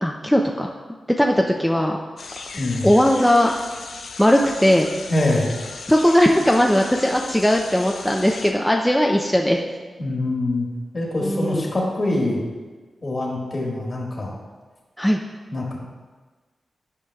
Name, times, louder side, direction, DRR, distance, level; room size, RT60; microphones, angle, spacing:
voice 1, 0.0-0.7 1.2-2.0 2.8-3.5 4.2-4.9 5.9-9.6 11.2-11.7 15.0-15.2, equal, 5° left, 1 dB, 0.5 m, -18 dB
sound 1, 2.2-8.5, left 4 dB, 80° left, 0.5 m, -37 dB
voice 2, 2.6-2.9 5.1-5.5 10.0-10.7 10.9-12.4 13.0-14.3 15.5-15.8, left 2 dB, 45° left, -2 dB, 1.6 m, -24 dB
10.5 x 5.0 x 2.3 m, 1.4 s
cardioid pair, 60°, 0 cm